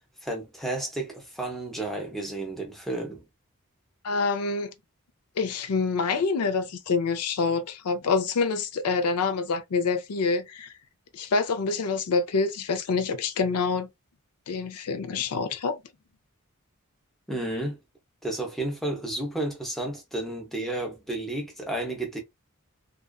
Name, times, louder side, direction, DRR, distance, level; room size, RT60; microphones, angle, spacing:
voice 1, 0.2-3.3 17.3-17.8 18.2-22.2, right 1 dB, ahead, 0.6 m, -32 dB
voice 2, 4.0-4.7 5.4-10.7 11.1-13.9 14.5-15.8, left 4 dB, 90° left, 0.5 m, -26 dB
2.4 x 2.3 x 2.2 m
head